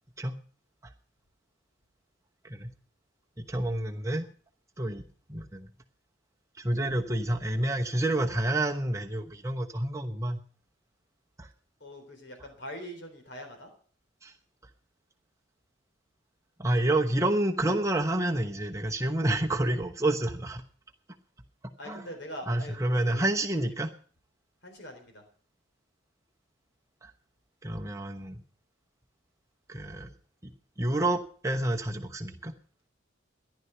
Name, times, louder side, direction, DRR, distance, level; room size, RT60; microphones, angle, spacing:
voice 1, 3.4-4.3 4.8-5.0 5.3-5.7 6.6-10.4 11.4-11.5 14.2-14.3 16.6-20.6 21.9-22.0 22.5-23.9 27.0-27.1 27.6-28.4 29.7-30.1 30.8-32.5, right 1 dB, 15° right, 4 dB, 1.0 m, -29 dB
voice 2, 11.8-13.7 21.8-23.3 23.7-23.8 24.6-25.2, equal, 60° left, 5 dB, 3.8 m, -43 dB
14.5 x 11.0 x 5.8 m, 0.43 s
head